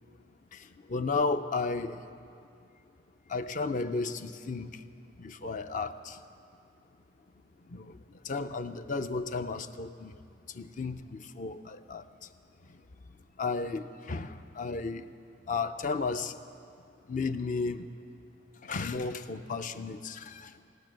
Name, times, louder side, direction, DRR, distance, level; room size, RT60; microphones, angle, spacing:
voice 1, 0.5-2.0 3.3-4.8 5.2-6.2 7.7-10.2 10.5-12.3 12.7-12.8 13.4-15.1 15.5-16.4 17.1-17.9 18.6-20.6, left 4 dB, 40° left, 10 dB, 0.5 m, -34 dB
16.5 x 10.5 x 7.5 m, 2.5 s
head